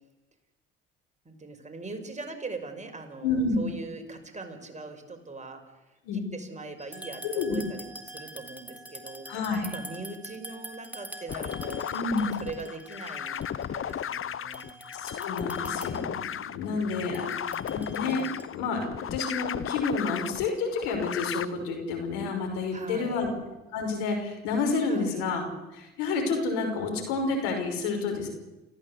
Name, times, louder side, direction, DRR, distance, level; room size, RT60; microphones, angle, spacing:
voice 1, 1.2-9.3 9.7-11.9 12.4-14.8 16.6-17.9 22.7-23.3 24.9-25.2, right 3 dB, 20° right, 5 dB, 5.7 m, -42 dB
voice 2, 3.2-3.6 6.0-6.3 7.2-7.6 9.3-9.7 11.9-12.3 15.0-17.4 17.7-18.2 18.5-23.3 23.7-25.4 25.7-28.3, left 4 dB, 80° left, 3 dB, 5.6 m, -29 dB
sound 1, 6.8-14.1 14.5-16.1 17.1-18.4, right 1 dB, 5° right, 3.8 m, -45 dB
sound 2, 11.3-21.4, left 9 dB, 40° left, 1.1 m, -35 dB
29.5 x 15.5 x 8.2 m, 1.0 s
hypercardioid pair, 55°, 31 cm